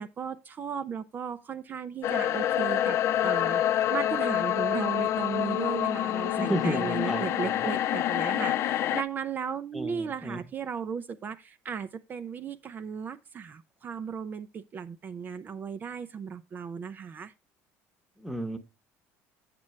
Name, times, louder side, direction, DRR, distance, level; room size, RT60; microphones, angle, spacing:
voice 1, 0.0-17.3, right 6 dB, 35° right, 0.4 m, -36 dB
sound 1, 2.0-9.0, left 12 dB, 55° left, 0.4 m, -27 dB
voice 2, 6.4-7.7 9.7-10.4 18.2-18.6, right 1 dB, 5° right, 0.9 m, -33 dB
7.5 x 7.4 x 3.1 m
cardioid pair, 135°, 6 cm